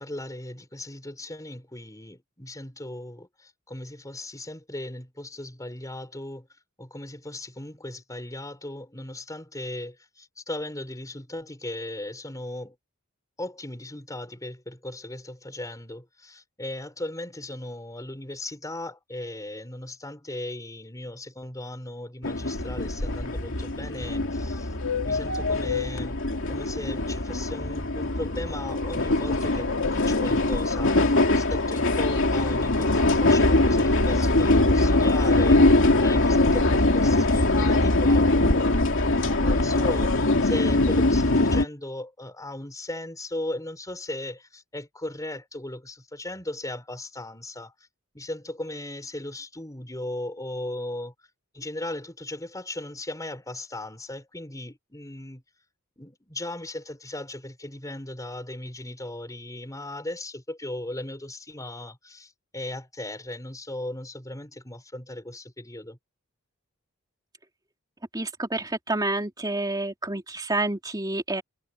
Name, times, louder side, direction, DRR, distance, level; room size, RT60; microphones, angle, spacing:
voice 1, 0.0-6.5 6.8-12.7 13.4-24.7 25.0-26.2 26.5-47.7 48.1-51.1 51.5-55.4 56.0-66.0, left 1 dB, 15° left, 4.8 m, -37 dB
sound 1, 22.2-41.6, left 2 dB, 60° left, 2.7 m, -22 dB
voice 2, 68.1-71.4, right 2 dB, 20° right, 3.0 m, -28 dB
head